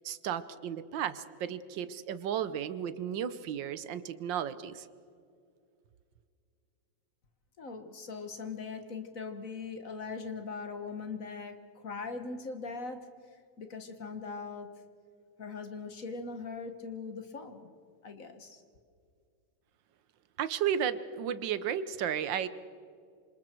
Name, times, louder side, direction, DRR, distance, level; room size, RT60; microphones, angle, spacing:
voice 1, 0.0-4.9 20.4-22.5, right 9 dB, 75° right, 14 dB, 1.5 m, -33 dB
voice 2, 7.6-11.6 11.8-13.1 13.6-14.7 15.4-17.7 18.0-18.6, left 4 dB, 45° left, 7 dB, 1.8 m, -40 dB
27.0 x 26.5 x 4.5 m, 2.3 s
omnidirectional pair, 2.0 m